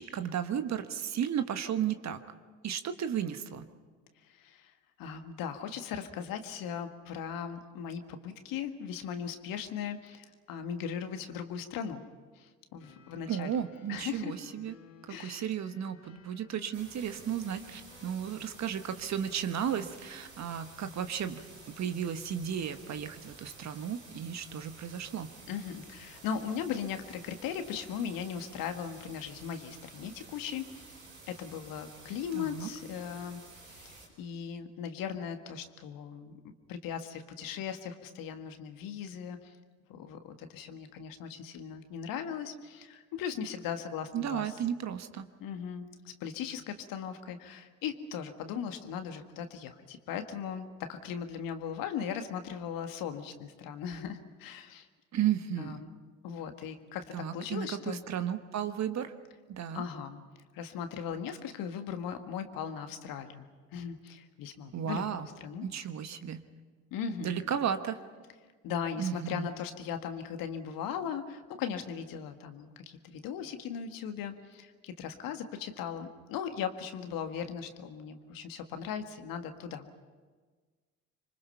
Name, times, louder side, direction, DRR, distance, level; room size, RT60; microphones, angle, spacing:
voice 1, 0.0-2.2 2.6-3.7 13.3-14.7 15.2-25.3 32.3-32.7 44.1-45.2 55.1-55.8 57.1-59.1 59.5-59.8 64.7-65.3 65.6-66.5 67.2-68.0 69.0-69.5, right 9 dB, 45° right, 9 dB, 1.4 m, -34 dB
voice 2, 4.3-4.7 5.0-12.0 12.4-13.6 13.9-14.4 15.1-15.5 25.5-31.0 31.3-36.4 36.7-39.5 39.9-44.6 45.4-54.9 55.6-55.9 56.2-57.0 57.3-58.0 59.7-60.2 60.5-63.5 63.7-65.1 65.4-65.7 66.9-67.3 68.6-79.9, left 7 dB, 60° left, 7 dB, 1.8 m, -38 dB
sound 1, 12.8-18.3, left 5 dB, 85° left, 1.5 m, -56 dB
sound 2, 16.7-34.1, right 3 dB, 90° right, 5.4 m, -52 dB
26.0 x 24.0 x 5.7 m, 1.4 s
hypercardioid pair, 55°, 38 cm